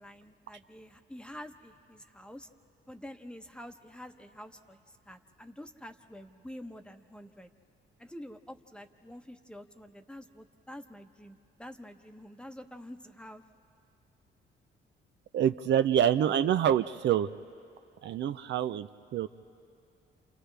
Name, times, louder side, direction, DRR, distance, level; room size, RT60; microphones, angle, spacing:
voice 1, 0.0-2.5 2.9-4.8 5.1-7.5 8.0-13.4, equal, 5° left, 6 dB, 1.0 m, -47 dB
voice 2, 15.3-17.3 18.0-19.3, right 10 dB, 65° right, 10 dB, 0.5 m, -26 dB
29.5 x 28.0 x 3.4 m, 2.6 s
cardioid pair, 90°, 20 cm